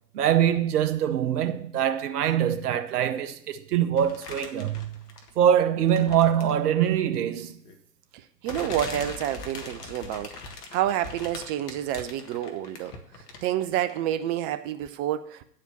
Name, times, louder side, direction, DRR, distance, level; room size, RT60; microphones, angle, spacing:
voice 1, 0.1-4.9 5.4-7.6, right 9 dB, 65° right, 0.9 m, -23 dB
sound 1, 4.0-5.5 5.9-6.7 7.7-7.8 8.5-13.6 13.9-14.0, left 3 dB, 70° left, 1.8 m, -41 dB
voice 2, 8.4-10.4 10.7-12.9 13.4-15.4, right 12 dB, 20° right, 0.4 m, -28 dB
9.5 x 5.0 x 7.1 m
hypercardioid pair, 105°, 49 cm